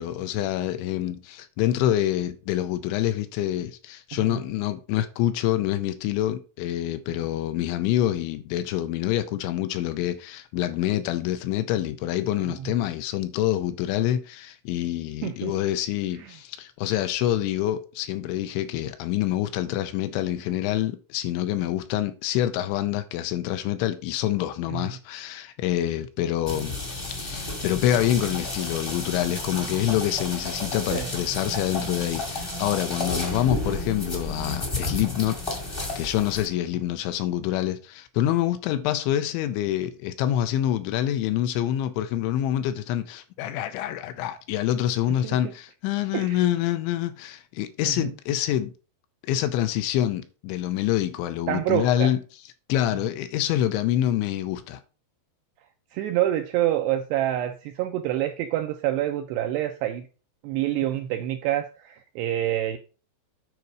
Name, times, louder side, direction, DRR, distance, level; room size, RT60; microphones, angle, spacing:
voice 1, 0.0-35.4 35.7-48.7 49.2-52.2 52.7-54.8, left 12 dB, 85° left, 2.9 m, -26 dB
voice 2, 15.2-15.5 16.2-16.3 24.7-24.9 30.9-31.1 45.1-45.4 46.1-46.4 47.8-48.1 51.5-52.1 55.9-60.1 60.4-62.8, right 13 dB, 85° right, 2.4 m, -27 dB
sound 1, 26.5-36.5, left 2 dB, 35° left, 0.9 m, -32 dB
9.6 x 4.5 x 5.2 m
omnidirectional pair, 5.5 m